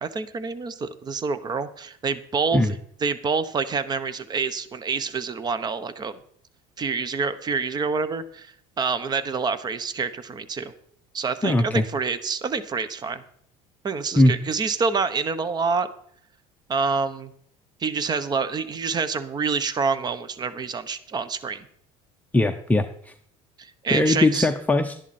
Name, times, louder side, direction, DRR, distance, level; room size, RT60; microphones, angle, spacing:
voice 1, 0.0-6.1 6.8-10.7 11.1-13.2 13.8-15.9 16.7-17.3 17.8-21.6 23.6-24.5, right 5 dB, 25° right, 14 dB, 1.0 m, -27 dB
voice 2, 11.4-11.8 14.2-14.3 22.3-23.1 23.9-24.9, left 2 dB, 10° left, 4 dB, 0.7 m, -20 dB
12.5 x 10.5 x 4.3 m, 0.64 s
cardioid pair, 120°, 15 cm